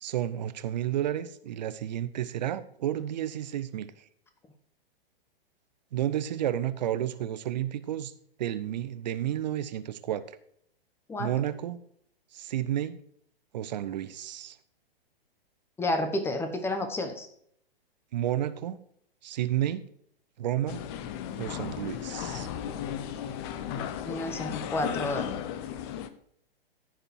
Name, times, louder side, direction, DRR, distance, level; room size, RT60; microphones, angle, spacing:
voice 1, 0.0-3.9 5.9-8.1 8.4-10.4 11.2-11.8 12.3-13.0 13.5-14.6 18.1-18.8 19.2-19.8 20.4-20.8 21.4-22.5, right 11 dB, 45° right, 13 dB, 0.7 m, -31 dB
voice 2, 15.8-17.3 24.0-25.3, left 1 dB, 10° left, 7 dB, 1.1 m, -30 dB
sound 1, 20.7-26.1, left 9 dB, 25° left, 0.6 m, -35 dB
14.5 x 5.1 x 4.5 m, 0.67 s
figure-of-eight pair, 110°, 30 cm